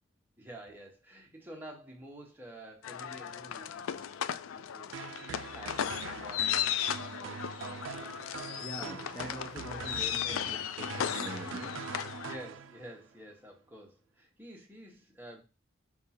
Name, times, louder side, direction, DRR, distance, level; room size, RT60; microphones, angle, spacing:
voice 1, 0.4-6.6 7.1-7.5 12.2-15.4, right 1 dB, 10° right, 0.9 m, -50 dB
sound 1, 2.8-12.4, left 9 dB, 80° left, 0.3 m, -36 dB
sound 2, 4.9-13.1, right 7 dB, 70° right, 0.3 m, -43 dB
voice 2, 8.6-11.9, equal, 10° left, 0.5 m, -44 dB
5.1 x 2.4 x 4.1 m
head